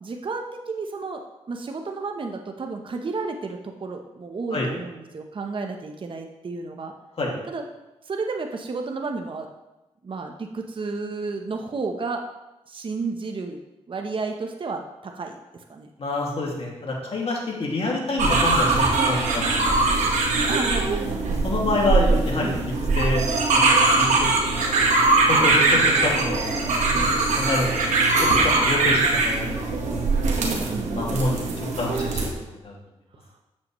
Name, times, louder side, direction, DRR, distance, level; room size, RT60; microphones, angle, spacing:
voice 1, 0.0-6.9 7.5-7.6 8.0-9.5 10.0-12.2 12.7-13.6 13.9-15.4 15.7-15.9 20.5-21.6 30.4-31.5, right 4 dB, 45° right, 3 dB, 0.8 m, -32 dB
voice 2, 16.0-20.1 21.4-23.2 24.0-25.0 25.3-26.7 27.0-27.7 28.2-30.0 31.0-32.3 32.6-32.7, left 2 dB, 55° left, -2 dB, 2.1 m, -27 dB
sound 1, 18.2-32.3, right 3 dB, 85° right, 1.3 m, -21 dB
7.5 x 7.5 x 3.1 m, 1.0 s
cardioid pair, 60°, 12 cm